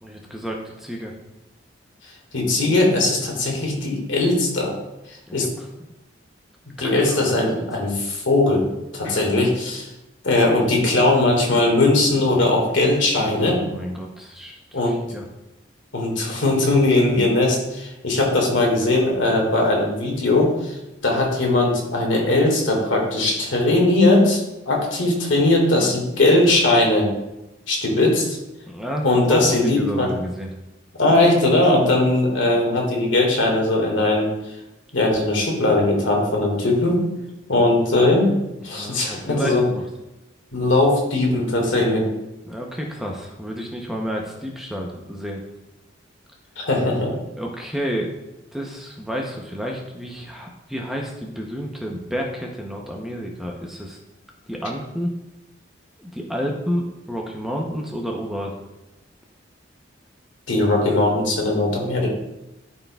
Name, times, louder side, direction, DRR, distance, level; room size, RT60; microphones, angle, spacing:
voice 1, 0.0-1.1 5.3-5.7 6.8-7.9 13.2-14.6 15.1-15.3 28.7-30.5 38.8-39.8 42.5-45.4 47.4-48.1 48.5-54.0 54.5-55.1 56.0-58.5, equal, ahead, 0 dB, 0.6 m, -30 dB
voice 2, 2.3-4.7 5.3-5.5 6.8-8.7 8.9-9.9 10.2-13.6 14.7-15.0 15.9-20.8 21.0-27.1 27.7-28.4 29.0-30.1 31.0-34.3 34.9-37.0 37.5-38.3 38.6-39.7 40.5-42.1 46.6-47.2 60.5-62.1, left 2 dB, 80° left, 0 dB, 1.8 m, -19 dB
12.0 x 4.5 x 2.3 m, 0.95 s
head